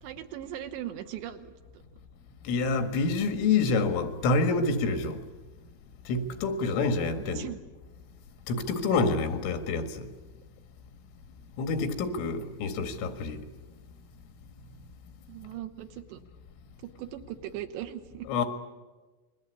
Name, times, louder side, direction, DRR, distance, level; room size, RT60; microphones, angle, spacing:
voice 1, 0.0-1.8 7.2-7.6 15.3-16.2 16.8-18.3, right 11 dB, 75° right, 3.0 m, -39 dB
voice 2, 2.5-5.2 6.1-7.5 8.5-10.1 11.6-13.4 18.3-18.5, left 3 dB, 85° left, 4.4 m, -27 dB
28.5 x 22.0 x 8.4 m
omnidirectional pair, 5.6 m